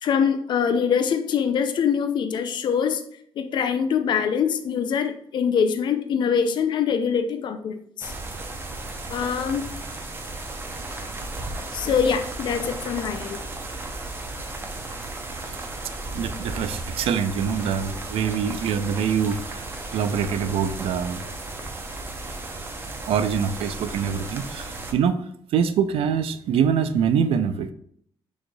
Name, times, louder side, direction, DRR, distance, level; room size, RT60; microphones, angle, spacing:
voice 1, 0.0-3.0 3.4-8.1 9.1-9.7 11.7-13.4, left 7 dB, 50° left, 0.4 m, -24 dB
sound 1, 8.0-24.9, right 2 dB, 25° right, 0.6 m, -34 dB
voice 2, 16.1-19.6 19.9-21.2 23.1-25.2 25.5-27.7, right 7 dB, 75° right, 0.4 m, -24 dB
6.2 x 3.2 x 2.2 m
cardioid pair, 140°, 10 cm